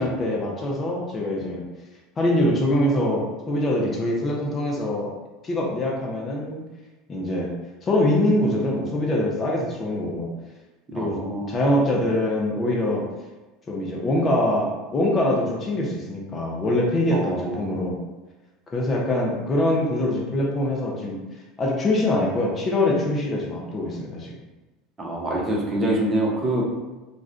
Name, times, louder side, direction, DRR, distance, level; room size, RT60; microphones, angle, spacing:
voice 1, 0.0-1.6 2.2-5.1 5.4-6.6 7.1-7.5 7.8-10.3 10.9-11.2 11.5-13.0 13.7-18.0 18.7-21.2 21.6-24.3, left 1 dB, 30° left, -2 dB, 0.7 m, -23 dB
voice 2, 10.9-11.6 17.1-17.6 25.0-26.6, right 1 dB, 25° right, -3 dB, 1.0 m, -25 dB
2.5 x 2.4 x 3.3 m, 1.1 s
hypercardioid pair, 80°, 0 cm